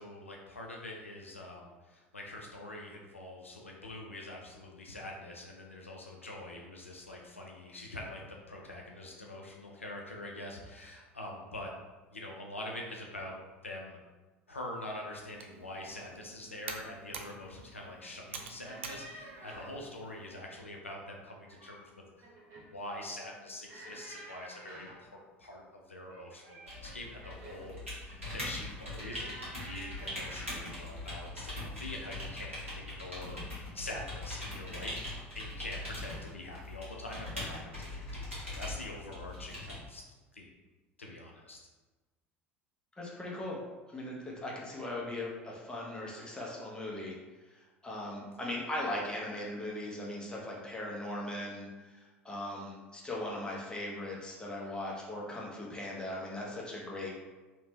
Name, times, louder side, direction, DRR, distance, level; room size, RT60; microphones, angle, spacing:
voice 1, 0.0-11.7 12.1-13.4 13.6-14.0 14.5-22.3 22.7-40.0 40.3-40.5 41.0-41.6, left 1 dB, 85° left, -1 dB, 0.4 m, -45 dB
Computer keyboard, 15.2-20.4, right 5 dB, 70° right, 0.4 m, -48 dB
sound 1, 18.6-19.8 21.3-21.9 22.2-22.7 23.7-25.1 26.1-27.7 28.9-30.8 31.7-32.0 32.3-32.5, right 1 dB, 50° right, 0.9 m, -50 dB
sound 2, 26.7-39.8, left 1 dB, 90° right, 1.1 m, -41 dB
voice 2, 43.0-43.6 43.9-47.2 47.5-57.1, left 1 dB, 10° left, -3 dB, 1.0 m, -39 dB
3.2 x 2.9 x 3.3 m, 1.2 s
figure-of-eight pair, 70°, 7 cm